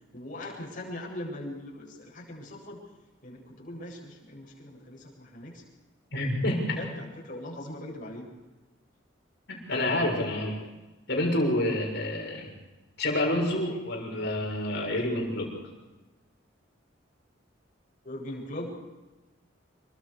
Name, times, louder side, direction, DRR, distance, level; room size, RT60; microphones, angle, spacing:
voice 1, 0.1-2.8 3.2-5.6 6.2-6.3 6.7-8.3 18.0-18.8, left 1 dB, 45° left, -2 dB, 7.9 m, -40 dB
voice 2, 6.1-6.8 9.5-10.6 11.1-12.5 13.0-15.5, left 1 dB, 60° left, 0 dB, 6.7 m, -28 dB
27.5 x 24.0 x 5.0 m, 1.2 s
head